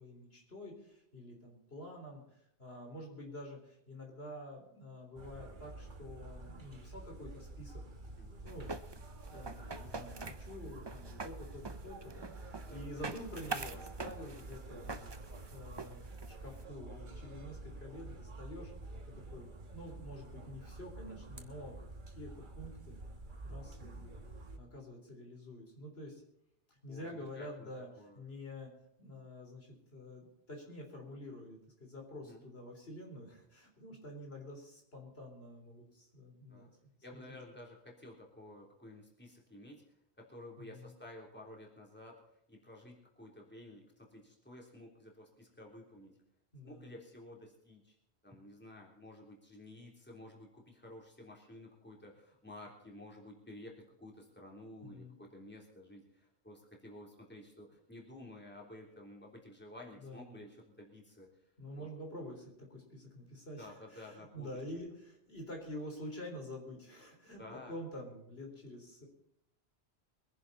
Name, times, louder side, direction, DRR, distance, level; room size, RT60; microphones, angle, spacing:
voice 1, 0.0-7.8 8.4-8.7 9.3-18.7 19.1-21.8 22.1-23.0 23.4-24.1 24.6-26.2 26.7-28.7 29.0-36.7 37.1-37.2 40.6-40.9 46.5-47.0 54.8-55.2 60.0-60.5 61.6-69.1, left 1 dB, 65° left, 1 dB, 4.0 m, -48 dB
sound 1, 5.1-24.6, right 2 dB, 50° right, 1.5 m, -49 dB
sound 2, 8.5-16.6, right 4 dB, 30° right, 0.7 m, -45 dB
voice 2, 12.7-13.0 21.1-21.2 26.9-27.7 28.0-28.2 32.2-32.4 36.5-36.7 37.0-39.8 40.2-46.2 46.6-47.9 48.2-61.3 61.7-61.9 63.6-64.5 67.4-67.7, left 1 dB, 10° left, -2 dB, 3.4 m, -52 dB
23.0 x 11.0 x 4.1 m, 0.79 s
omnidirectional pair, 1.1 m